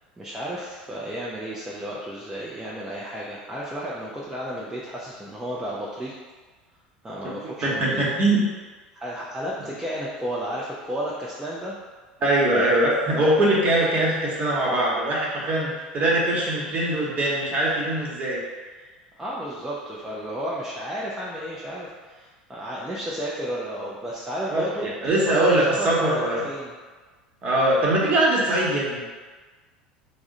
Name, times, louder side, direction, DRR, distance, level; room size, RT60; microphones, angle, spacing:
voice 1, 0.2-6.1 7.0-8.0 9.0-11.7 19.2-26.7, equal, 10° right, -6 dB, 0.5 m, -32 dB
voice 2, 7.6-8.4 12.2-18.4 24.5-26.4 27.4-29.0, right 1 dB, 30° right, -5 dB, 1.1 m, -22 dB
3.5 x 2.1 x 3.7 m, 1.4 s
figure-of-eight pair, 75°, 5 cm